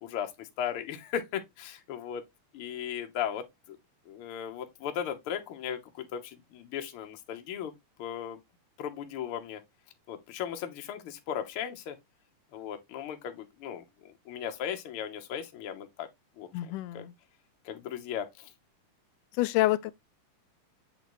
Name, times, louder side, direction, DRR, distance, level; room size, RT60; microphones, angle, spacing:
voice 1, 0.0-2.2 2.5-3.8 4.1-7.7 8.0-8.4 8.8-9.6 10.1-12.0 12.5-16.1 16.4-16.5 16.9-17.0 17.6-18.5, left 9 dB, 65° left, 1.4 m, -37 dB
voice 2, 16.5-17.1 19.4-19.9, left 16 dB, 85° left, 2.1 m, -27 dB
7.8 x 4.0 x 3.0 m
omnidirectional pair, 3.7 m